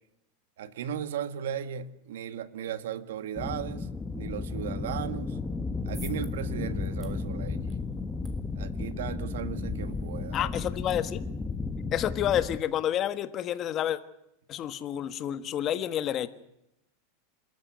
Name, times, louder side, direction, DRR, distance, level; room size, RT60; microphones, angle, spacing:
voice 1, 0.6-5.4 5.8-7.8 8.5-10.5, right 9 dB, 85° right, 1.8 m, -36 dB
sound 1, 3.3-12.6, left 4 dB, 10° left, 1.4 m, -34 dB
sound 2, 5.5-11.9, right 2 dB, 10° right, 3.7 m, -55 dB
voice 2, 10.3-11.2 11.9-14.0 14.5-16.3, left 11 dB, 30° left, 1.4 m, -29 dB
27.0 x 13.5 x 9.3 m
supercardioid pair, 150°, 0 cm